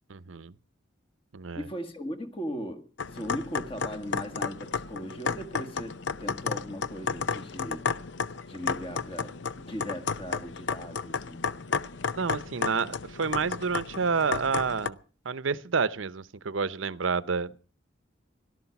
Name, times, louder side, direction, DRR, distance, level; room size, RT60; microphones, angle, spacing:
voice 1, 0.1-0.5 1.3-1.7 12.2-15.0 15.2-17.6, right 5 dB, 85° right, 0.8 m, -29 dB
voice 2, 1.5-7.9 8.5-11.4, equal, 30° left, 1.9 m, -38 dB
sound 1, 3.0-14.9, left 5 dB, 65° left, 0.7 m, -33 dB
17.5 x 12.5 x 5.9 m
head